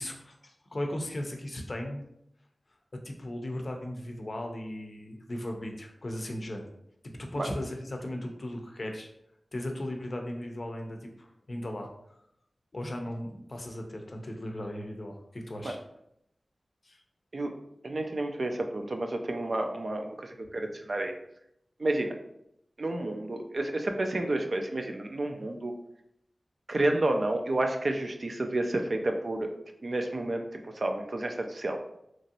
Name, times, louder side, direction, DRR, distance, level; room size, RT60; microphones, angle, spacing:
voice 1, 0.0-2.0 3.0-6.7 7.2-9.1 9.5-11.9 12.7-15.8 16.8-17.0, left 1 dB, 55° left, 3 dB, 0.5 m, -37 dB
voice 2, 17.8-21.1 21.8-22.1 22.8-25.7 26.7-29.5 29.8-30.4 30.8-31.8, right 2 dB, 60° right, 4 dB, 0.4 m, -30 dB
3.0 x 2.5 x 2.7 m, 0.78 s
wide cardioid pair, 55°, 0 cm